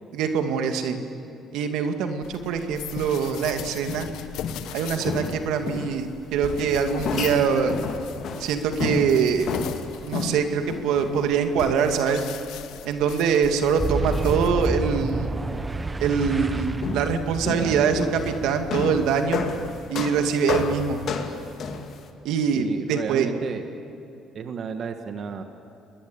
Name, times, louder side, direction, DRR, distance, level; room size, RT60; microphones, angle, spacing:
voice 1, 0.1-1.0 1.5-4.1 4.7-7.8 8.4-9.5 10.1-12.2 12.8-15.4 16.0-19.4 19.9-21.0 22.2-23.3, right 6 dB, 80° right, 6 dB, 2.3 m, -24 dB
sound 1, 2.2-15.0, left 9 dB, 80° left, 1.5 m, -39 dB
sound 2, 3.9-4.8 5.1-6.0 6.4-11.3 12.0-12.1 13.3-13.4 14.8-14.9 16.2-16.4 16.8-22.1, left 5 dB, 60° left, 2.6 m, -31 dB
Boom, 13.8-20.3, right 2 dB, 20° right, 1.3 m, -30 dB
voice 2, 17.4-18.0 22.5-23.7 24.3-25.4, right 6 dB, 50° right, 6 dB, 1.7 m, -33 dB
29.0 x 21.5 x 8.8 m, 2.8 s
cardioid pair, 100°, 0 cm